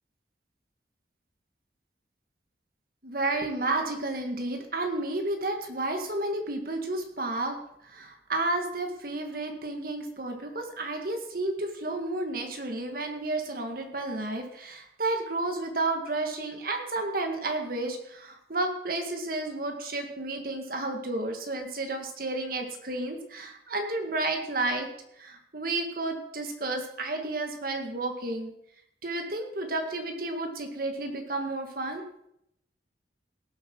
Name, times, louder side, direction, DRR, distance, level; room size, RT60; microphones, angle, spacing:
voice 1, 3.0-7.6 7.8-24.9 25.2-28.5 29.0-32.0, right 2 dB, 55° right, 4 dB, 2.0 m, -31 dB
18.0 x 8.1 x 4.7 m, 0.75 s
head